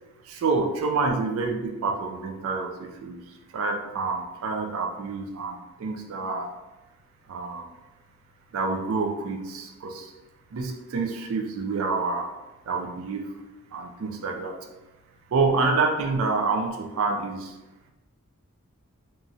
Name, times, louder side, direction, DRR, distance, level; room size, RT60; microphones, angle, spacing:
voice 1, 0.2-6.5 7.3-7.7 8.5-10.1 10.5-12.3 12.7-13.3 13.7-14.6 15.3-17.6, right 4 dB, 65° right, 3 dB, 0.4 m, -28 dB
3.0 x 2.3 x 2.6 m, 1.0 s
head